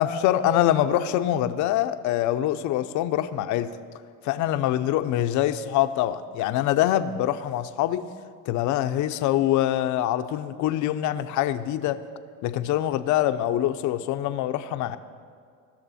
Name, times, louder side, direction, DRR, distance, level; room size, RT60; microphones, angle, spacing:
voice 1, 0.0-3.7 4.2-8.0 8.5-12.0 12.4-15.0, left 12 dB, 50° left, 11 dB, 0.7 m, -24 dB
18.5 x 6.6 x 4.2 m, 2.2 s
supercardioid pair, 105°, 38 cm